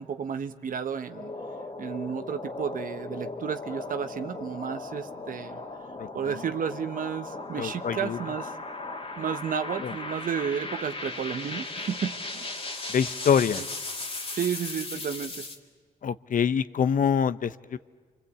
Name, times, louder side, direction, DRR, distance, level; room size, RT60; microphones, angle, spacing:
voice 1, 0.0-1.3 1.8-5.6 6.1-8.6 9.2-12.5 13.6-13.7 14.3-15.4, right 7 dB, 65° right, 9 dB, 1.1 m, -32 dB
sound 1, 1.0-15.6, left 2 dB, 40° left, 2.4 m, -37 dB
voice 2, 7.6-8.2 9.8-9.9 12.9-13.6 16.0-17.8, left 7 dB, 60° left, 15 dB, 0.8 m, -25 dB
28.5 x 25.0 x 8.4 m, 1.4 s
cardioid pair, 60°, 15 cm